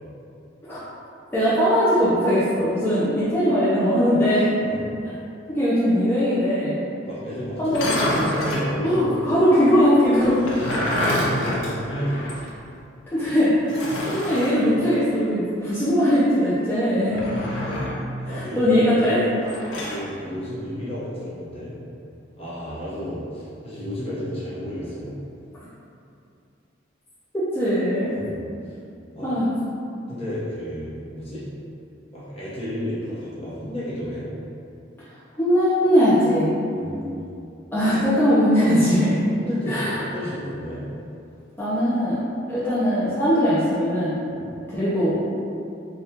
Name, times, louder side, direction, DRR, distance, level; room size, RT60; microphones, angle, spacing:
voice 1, 1.3-4.5 5.5-6.8 7.6-7.9 8.8-10.5 13.1-17.2 18.3-19.2 27.3-28.1 29.2-29.5 35.4-36.5 37.7-39.2 39.7-40.0 41.6-42.2 42.5-44.2 44.7-45.2, equal, 10° left, -13 dB, 0.5 m, -20 dB
voice 2, 7.0-9.2 10.5-12.5 18.2-19.1 19.7-21.8 22.4-25.2 28.0-28.7 29.1-29.3 30.1-31.5 32.1-34.2 36.7-37.3 39.4-40.8 44.3-44.5, equal, 35° left, -10 dB, 1.0 m, -32 dB
sound 1, 7.6-8.7 10.2-12.5 12.8-12.9 13.7-14.6 17.1-18.0 19.4-20.0, left 1 dB, 85° left, 0.6 m, -27 dB
3.5 x 2.3 x 2.8 m, 2.6 s
head